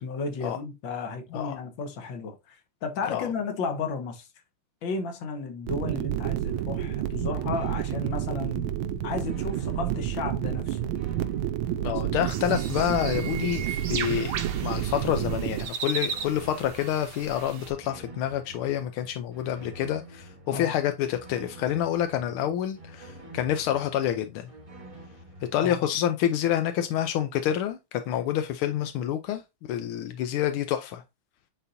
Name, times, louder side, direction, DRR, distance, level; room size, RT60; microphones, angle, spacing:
voice 1, 0.0-4.3 4.8-8.7 9.0-10.8 11.8-12.0 20.5-20.7 25.5-25.9, left 4 dB, 65° left, 1.8 m, -33 dB
sound 1, 5.7-15.6, right 11 dB, 80° right, 1.4 m, -30 dB
sound 2, 6.4-25.9, right 1 dB, 20° right, 0.9 m, -48 dB
voice 2, 11.8-14.3 14.6-24.5 25.5-29.4 29.7-31.0, left 10 dB, 85° left, 1.5 m, -28 dB
sound 3, 12.3-17.7, right 6 dB, 60° right, 1.3 m, -36 dB
9.6 x 4.0 x 2.6 m
omnidirectional pair, 2.3 m